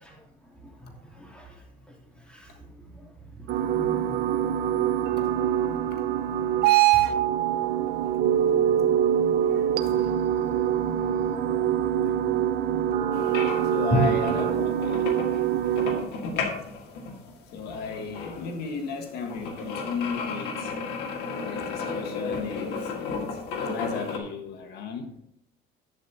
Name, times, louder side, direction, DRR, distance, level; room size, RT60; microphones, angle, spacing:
voice 1, 0.8-1.5 2.3-2.5 3.4-3.5 3.7-4.2 9.5-9.7 11.0-11.7 13.9-14.0, equal, 5° left, -2 dB, 2.9 m, -32 dB
sound 1, 3.5-16.0, right 10 dB, 75° right, 0.8 m, -24 dB
sound 2, 13.1-24.2, left 4 dB, 90° left, 1.7 m, -34 dB
voice 2, 13.7-15.1 16.8-16.9 17.5-20.7 21.4-25.1, left 5 dB, 70° left, 4 dB, 1.4 m, -35 dB
11.5 x 8.1 x 2.8 m, 0.72 s
cardioid pair, 110°, 17 cm